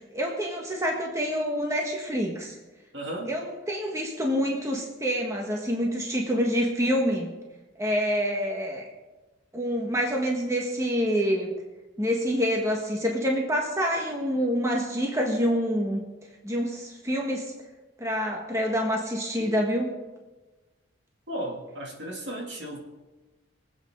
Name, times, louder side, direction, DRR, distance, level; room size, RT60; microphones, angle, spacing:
voice 1, 0.0-2.6 3.3-7.3 7.8-8.8 9.5-11.5 12.0-16.0 16.4-17.5 18.0-19.9, equal, 15° right, 0 dB, 1.5 m, -27 dB
voice 2, 2.9-3.3 21.3-22.8, right 1 dB, 60° right, 0 dB, 2.7 m, -34 dB
24.0 x 8.4 x 3.8 m, 1.2 s
head